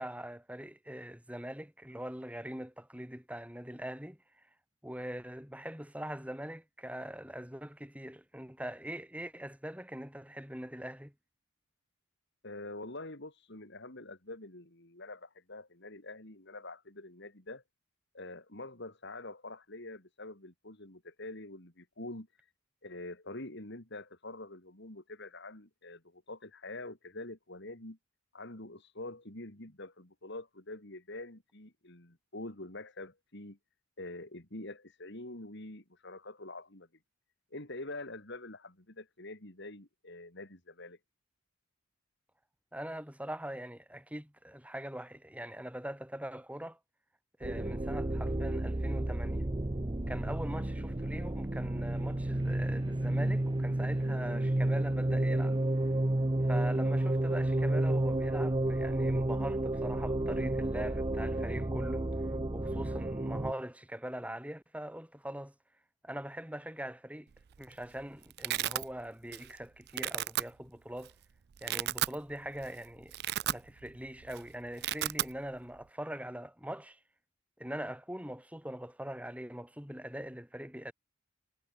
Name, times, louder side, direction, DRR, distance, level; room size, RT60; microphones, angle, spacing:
voice 1, 0.0-4.5 4.8-11.1 42.7-46.8 47.4-49.4 50.1-55.6 56.4-62.1 62.5-65.5 66.0-67.3 67.6-71.1 71.6-73.1 73.4-77.0 77.6-80.9, right 1 dB, 5° right, 7.7 m, -42 dB
voice 2, 12.4-17.6 18.1-22.3 22.8-28.0 28.3-33.6 34.0-36.9 37.5-41.0, left 2 dB, 55° left, 3.5 m, -45 dB
sound 1, 47.4-63.5, right 1 dB, 20° right, 0.7 m, -31 dB
Domestic sounds home sounds, 67.4-67.7 68.0-68.8 69.3-69.6 69.9-70.4 71.0-71.1 71.5-72.2 72.6-72.7 73.0-74.0 74.2-74.4 74.6-75.3, right 13 dB, 50° right, 0.4 m, -33 dB
head